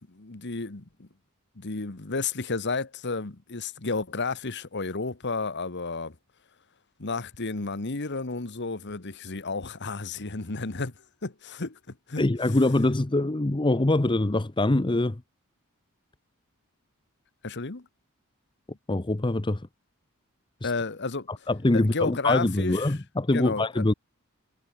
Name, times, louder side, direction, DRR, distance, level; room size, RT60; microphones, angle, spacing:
voice 1, 0.1-1.1 1.6-6.1 7.0-10.9 11.2-11.8 12.1-12.3 17.4-17.8 20.6-21.3 21.7-22.9 23.3-23.8, left 3 dB, 50° left, 1.4 m, -32 dB
voice 2, 12.2-15.2 18.9-19.6 20.6-20.7 21.3-23.9, left 2 dB, 20° left, 0.8 m, -24 dB
head